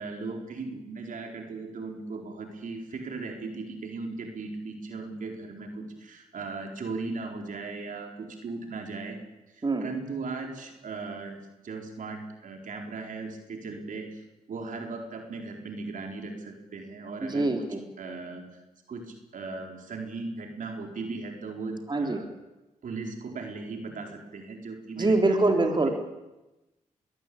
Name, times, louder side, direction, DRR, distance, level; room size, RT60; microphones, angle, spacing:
voice 1, 0.0-9.2 9.5-11.4 11.6-17.5 18.0-18.4 18.9-22.3 22.8-25.9, right 3 dB, 70° right, 3 dB, 4.4 m, -37 dB
voice 2, 17.2-17.8 21.9-22.2 25.0-25.9, right 2 dB, 30° right, 4 dB, 3.6 m, -24 dB
22.0 x 17.5 x 8.7 m, 1.0 s
cardioid pair, 60°, 14 cm